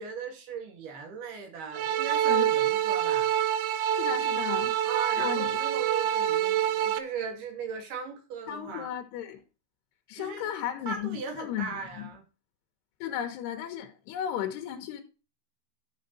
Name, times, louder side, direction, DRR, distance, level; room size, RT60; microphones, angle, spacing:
voice 1, 0.0-3.3 4.8-8.9 10.2-10.5 10.9-12.3, right 6 dB, 55° right, 4.3 m, -38 dB
sound 1, 1.7-7.0, right 10 dB, 80° right, 2.3 m, -26 dB
voice 2, 4.0-4.7 5.2-5.5 8.5-9.4 10.1-12.1 13.0-15.0, left 10 dB, 70° left, 3.0 m, -35 dB
12.5 x 7.2 x 4.2 m
omnidirectional pair, 5.7 m